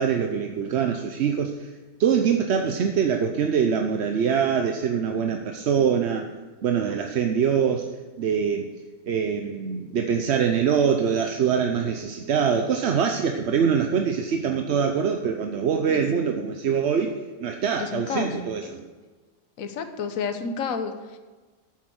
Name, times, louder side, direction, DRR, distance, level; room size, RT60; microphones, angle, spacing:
voice 1, 0.0-1.7 2.0-6.3 6.6-7.9 8.2-8.7 9.1-17.1 17.4-18.8, right 7 dB, 55° right, 4 dB, 0.8 m, -24 dB
voice 2, 17.8-18.3 19.6-21.2, left 6 dB, 65° left, 7 dB, 1.3 m, -30 dB
8.6 x 8.1 x 6.3 m, 1.3 s
omnidirectional pair, 1.6 m